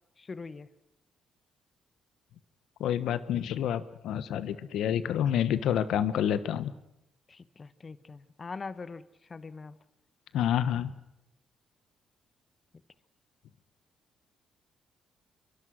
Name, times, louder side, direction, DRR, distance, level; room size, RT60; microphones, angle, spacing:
voice 1, 0.2-0.7 7.3-9.0 9.3-9.7, left 4 dB, 35° left, 15 dB, 1.0 m, -42 dB
voice 2, 2.8-6.7 10.3-10.9, left 10 dB, 80° left, 14 dB, 1.1 m, -28 dB
26.5 x 22.5 x 6.2 m, 0.87 s
cardioid pair, 90°, 0 cm